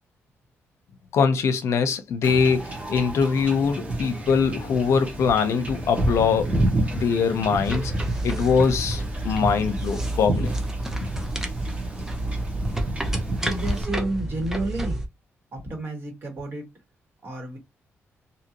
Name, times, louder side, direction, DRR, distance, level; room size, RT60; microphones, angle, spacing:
voice 1, 1.1-6.5 6.9-7.9 8.2-10.6, left 6 dB, 75° left, 0.6 m, -22 dB
Wind / Ocean / Boat Water vehicle, 2.2-13.8, right 1 dB, 25° right, 1.1 m, -30 dB
sound 1, 7.6-15.1, right 1 dB, 10° right, 0.7 m, -30 dB
voice 2, 13.4-15.0 15.5-16.6 17.2-17.6, right 2 dB, 50° right, 1.7 m, -30 dB
2.8 x 2.6 x 2.9 m
cardioid pair, 110°, 5 cm